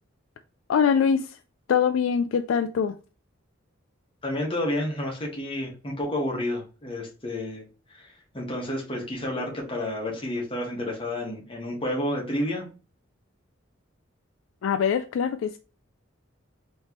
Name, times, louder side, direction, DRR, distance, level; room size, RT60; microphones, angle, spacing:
voice 1, 0.7-1.4 1.7-2.9 14.6-15.6, left 7 dB, 70° left, 0.3 m, -23 dB
voice 2, 4.2-12.7, left 1 dB, 25° left, 1.4 m, -30 dB
4.4 x 3.2 x 2.9 m
head